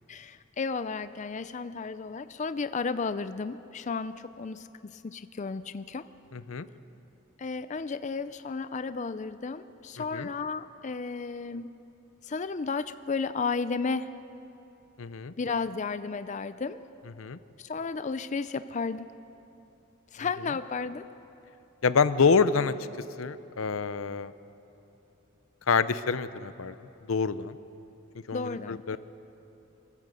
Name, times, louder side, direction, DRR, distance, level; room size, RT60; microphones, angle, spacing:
voice 1, 0.1-6.0 7.4-11.8 12.2-14.2 15.4-16.8 17.6-19.1 20.1-21.1 28.3-29.0, left 4 dB, 35° left, 12 dB, 0.4 m, -33 dB
voice 2, 6.3-6.7 10.1-10.3 15.0-15.3 17.2-17.4 21.8-22.7 23.2-24.3 25.7-26.7 27.1-27.6 28.3-29.0, left 5 dB, 80° left, 14 dB, 0.6 m, -26 dB
24.5 x 13.5 x 7.9 m, 2.9 s
head